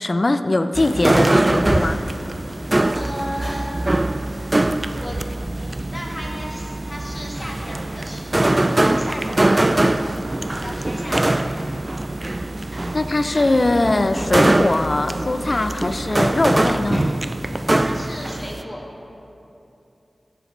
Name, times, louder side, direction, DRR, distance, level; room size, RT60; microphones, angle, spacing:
voice 1, 0.0-2.0 12.9-17.1, left 2 dB, 45° left, 9 dB, 0.5 m, -21 dB
sound 1, 0.7-18.6, right 1 dB, 30° right, 0.3 m, -22 dB
voice 2, 2.9-3.7 5.0-5.2 5.9-8.4 8.9-9.6 10.5-11.5 17.8-18.8, equal, 15° left, -3 dB, 2.0 m, -34 dB
15.5 x 8.0 x 3.3 m, 2.9 s
wide cardioid pair, 55°, 0 cm